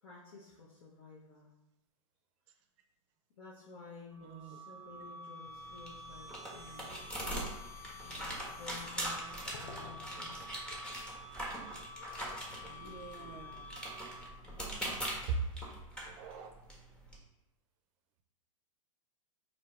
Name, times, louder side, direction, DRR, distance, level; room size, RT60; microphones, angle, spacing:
voice 1, 0.0-1.6 3.4-7.2 8.0-10.4, left 4 dB, 70° left, -6 dB, 0.8 m, -53 dB
sound 1, 4.1-14.5, left 1 dB, 55° left, 1.2 m, -50 dB
voice 2, 4.2-4.6 12.6-13.7 15.3-15.4 16.1-16.5, right 5 dB, 40° right, 6 dB, 0.5 m, -41 dB
sound 2, 5.4-17.2, right 1 dB, 5° left, 0.8 m, -42 dB
sound 3, 6.4-11.5, left 4 dB, 30° left, 0.4 m, -56 dB
3.4 x 2.7 x 3.1 m, 0.93 s
hypercardioid pair, 125°, 17 cm